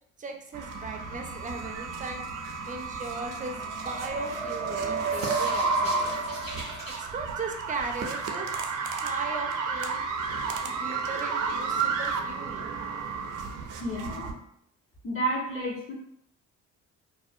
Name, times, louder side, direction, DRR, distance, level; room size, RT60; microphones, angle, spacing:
voice 1, 0.2-2.3 2.7-6.3 7.0-8.5 8.9-10.0 10.6-12.7, right 4 dB, 25° right, 4 dB, 0.4 m, -37 dB
sound 1, 0.5-14.3, right 4 dB, 85° right, 0.4 m, -32 dB
sound 2, 3.7-7.0, right 4 dB, 20° left, 1.1 m, -34 dB
voice 2, 13.8-14.4 15.0-15.9, right 1 dB, 45° left, -5 dB, 1.2 m, -31 dB
2.5 x 2.1 x 2.6 m, 0.70 s
cardioid pair, 90°, 30 cm